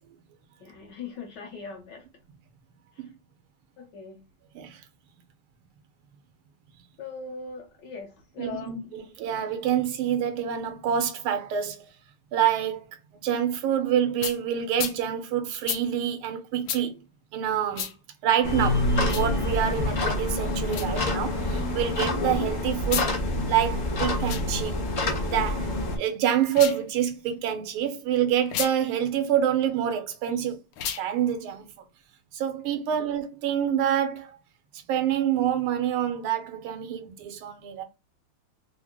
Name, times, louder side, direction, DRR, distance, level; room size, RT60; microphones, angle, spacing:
voice 1, 0.6-2.1 2.9-3.1 3.8-4.2 7.0-9.1 32.9-33.0, left 5 dB, 60° left, 1.3 m, -41 dB
voice 2, 8.4-11.9 12.3-13.0 13.2-17.0 17.3-17.9 18.2-23.1 23.5-24.8 25.2-30.6 31.0-31.7 32.3-34.4 34.7-37.8, right 9 dB, 80° right, 1.4 m, -27 dB
sound 1, 14.2-14.4 14.8-15.0 15.6-15.8 16.7-16.8 17.7-17.9 19.0-19.3 20.7-20.9 22.8-23.1 24.2-24.5 26.4-26.8 28.5-28.7 30.7-31.1, left 9 dB, 80° left, 1.5 m, -31 dB
sound 2, 18.4-26.0, left 2 dB, 35° left, 0.7 m, -27 dB
3.8 x 2.0 x 3.4 m
omnidirectional pair, 2.4 m